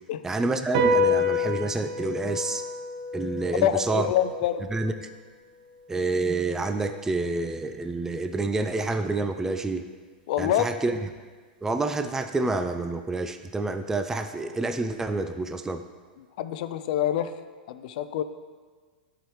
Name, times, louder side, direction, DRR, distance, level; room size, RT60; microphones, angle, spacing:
voice 1, 0.2-2.7 3.1-4.1 4.7-4.9 5.9-9.8 10.4-11.0 11.6-15.8, right 3 dB, 10° right, 8 dB, 0.4 m, -28 dB
sound 1, 0.7-7.5, left 2 dB, 55° right, 1.0 m, -29 dB
voice 2, 3.6-4.6 10.3-10.6 16.4-17.3 17.7-18.2, left 11 dB, 55° left, 12 dB, 0.5 m, -25 dB
11.0 x 4.9 x 3.1 m, 1.5 s
hypercardioid pair, 100°, 5 cm